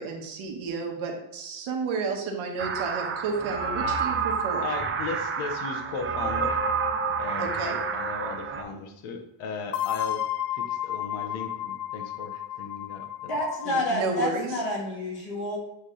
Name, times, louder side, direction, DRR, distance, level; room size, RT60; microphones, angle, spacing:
voice 1, 0.0-4.6 7.4-7.8 13.6-14.6, right 4 dB, 70° right, 2 dB, 1.3 m, -32 dB
sound 1, 2.6-8.6, right 6 dB, 25° right, 0.4 m, -29 dB
voice 2, 4.6-6.6 7.2-10.3 10.5-13.3, left 4 dB, 70° left, 5 dB, 1.0 m, -37 dB
sound 2, 6.2-8.5 9.7-14.0, left 11 dB, 90° left, 0.6 m, -33 dB
voice 3, 13.3-15.6, left 1 dB, 45° left, -2 dB, 2.0 m, -29 dB
8.2 x 3.3 x 3.9 m, 0.90 s
cardioid pair, 165°, 50 cm